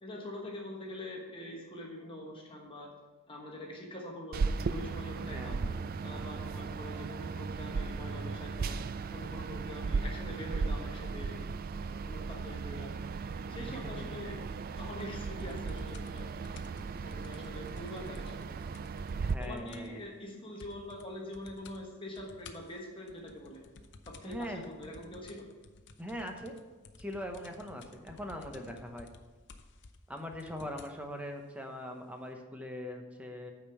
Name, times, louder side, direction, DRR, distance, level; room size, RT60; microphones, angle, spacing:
voice 1, 0.0-2.9 3.3-5.6 6.0-8.8 9.1-11.4 11.8-12.9 13.5-14.3 14.8-16.5 16.9-18.4 19.4-23.6 24.1-25.4, left 1 dB, 25° left, -1 dB, 1.2 m, -44 dB
sound 1, 4.3-19.4, right 4 dB, 40° right, 0.3 m, -36 dB
voice 2, 5.3-5.8 13.7-14.1 19.2-20.0 24.2-24.6 26.0-26.5 27.0-29.1 30.1-33.5, equal, 5° right, 4 dB, 0.9 m, -41 dB
sound 2, 15.0-20.0 20.3-20.4 20.6-21.1 21.3-21.8 22.1-31.0 31.8-31.9, left 3 dB, 50° left, 0.7 m, -54 dB
9.0 x 5.1 x 6.9 m, 1.3 s
head